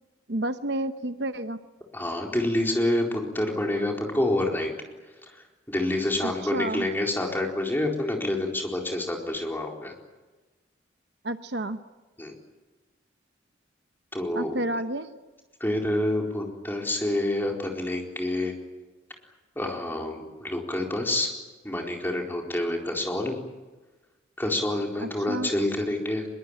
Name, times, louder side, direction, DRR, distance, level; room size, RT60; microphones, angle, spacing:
voice 1, 0.3-1.6 6.2-6.9 11.2-11.8 14.3-15.1 25.0-25.5, right 1 dB, 60° right, 10 dB, 1.0 m, -30 dB
voice 2, 1.9-4.7 5.7-9.9 12.2-12.4 14.1-14.6 15.6-18.5 19.6-21.3 21.6-23.4 24.4-26.3, left 1 dB, 10° left, 1 dB, 4.3 m, -27 dB
24.0 x 22.5 x 9.0 m, 1.2 s
head